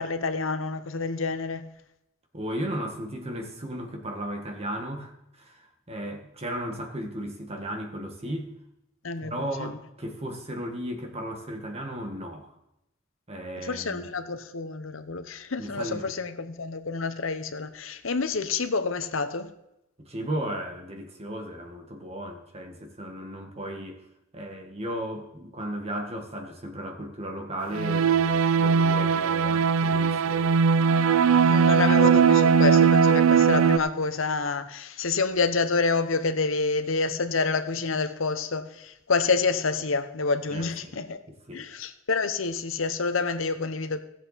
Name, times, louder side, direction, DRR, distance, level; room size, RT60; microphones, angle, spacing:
voice 1, 0.0-1.6 9.0-9.8 13.6-19.5 31.4-41.2 41.5-44.0, left 4 dB, 75° left, 0.9 m, -28 dB
voice 2, 2.3-8.5 9.2-12.5 13.3-14.1 15.6-16.1 20.0-24.0 24.3-30.6 40.5-41.0 41.3-41.7, equal, 30° right, 1.5 m, -35 dB
sound 1, 27.7-33.8, right 6 dB, 85° right, 0.4 m, -20 dB
17.0 x 7.6 x 4.1 m
head